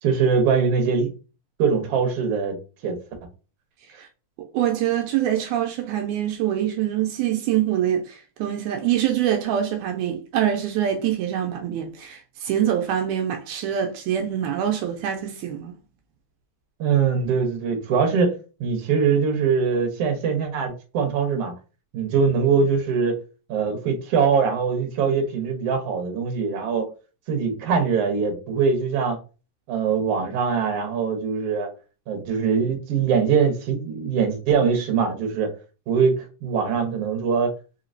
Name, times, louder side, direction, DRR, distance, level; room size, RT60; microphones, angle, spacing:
voice 1, 0.0-1.1 1.6-2.6 2.8-3.0 16.8-21.5 21.9-23.2 23.5-26.9 27.3-29.2 29.7-31.7 32.1-35.5 35.9-37.5, right 6 dB, 60° right, 2.0 m, -22 dB
voice 2, 4.4-15.7, right 10 dB, 85° right, 2.0 m, -25 dB
4.9 x 2.9 x 2.5 m
omnidirectional pair, 3.5 m